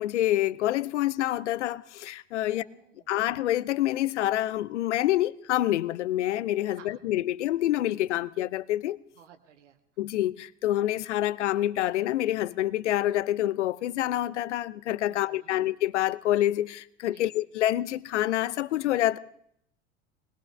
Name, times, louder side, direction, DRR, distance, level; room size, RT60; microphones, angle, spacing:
voice 1, 0.0-2.6 3.1-9.0 10.0-19.2, left 14 dB, 65° left, 0.6 m, -27 dB
voice 2, 2.5-3.2 6.7-7.0 9.2-9.8 15.1-15.6 17.1-17.3, right 8 dB, 70° right, 1.6 m, -55 dB
21.5 x 19.5 x 3.4 m
figure-of-eight pair, 75°, 37 cm